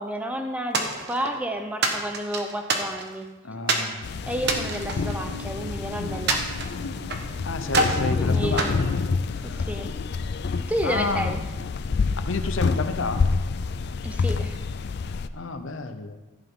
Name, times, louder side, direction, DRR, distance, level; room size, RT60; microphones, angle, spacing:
voice 1, 0.0-3.3 4.3-6.5 8.2-8.8 9.4-9.9 10.7-11.4 14.0-14.6, equal, 5° right, 5 dB, 0.7 m, -31 dB
sound 1, 0.7-1.4 1.8-3.2 3.7-3.9 4.4-5.7 6.3-7.3 7.7-8.1 8.6-9.6, right 3 dB, 50° right, 1.1 m, -27 dB
voice 2, 3.4-4.0 7.4-8.9 10.8-11.4 12.3-13.2 15.1-16.2, left 3 dB, 65° left, 8 dB, 0.8 m, -30 dB
sound 2, 4.0-15.3, left 4 dB, 50° left, 0.3 m, -28 dB
sound 3, 4.3-11.8, equal, 35° right, 2.2 m, -44 dB
14.5 x 8.3 x 3.7 m, 1.1 s
head